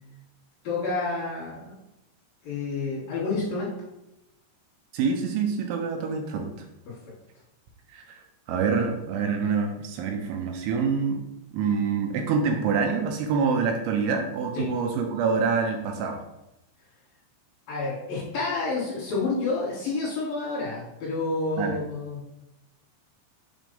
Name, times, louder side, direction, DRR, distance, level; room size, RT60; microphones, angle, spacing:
voice 1, 0.6-1.7 2.4-3.7 6.9-7.0 14.5-14.7 17.7-22.3, left 3 dB, 55° left, -7 dB, 3.0 m, -29 dB
voice 2, 4.9-6.5 7.9-8.2 8.5-11.2 11.5-16.2 21.6-21.8, right 5 dB, 80° right, 3 dB, 3.0 m, -26 dB
7.4 x 2.8 x 5.3 m, 0.89 s
omnidirectional pair, 5.7 m